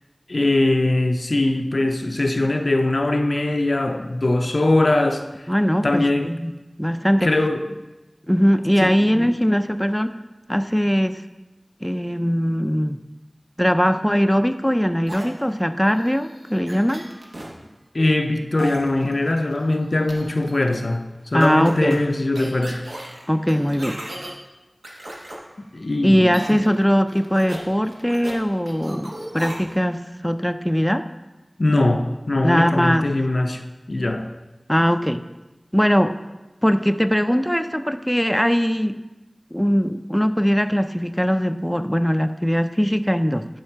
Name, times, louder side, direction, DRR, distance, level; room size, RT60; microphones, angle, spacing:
voice 1, 0.3-5.3 5.8-6.3 7.2-7.7 8.8-9.3 17.9-22.8 25.7-26.6 31.6-34.3, left 2 dB, 70° left, 0.5 m, -21 dB
voice 2, 5.5-6.5 6.8-7.3 8.3-10.1 10.5-11.2 11.8-13.0 13.6-17.1 21.3-22.0 23.3-24.0 26.0-31.1 32.4-33.1 34.7-35.2 35.7-36.1 36.6-39.0 39.5-43.5, equal, 5° left, 0.4 m, -20 dB
sound 1, 15.1-17.5 18.6-19.7 20.1-20.8 21.4-24.3 24.8-25.4 26.3-26.8 27.1-28.4 28.7-29.8, right 1 dB, 85° right, 1.2 m, -37 dB
10.5 x 3.7 x 4.5 m
wide cardioid pair, 40°, 0 cm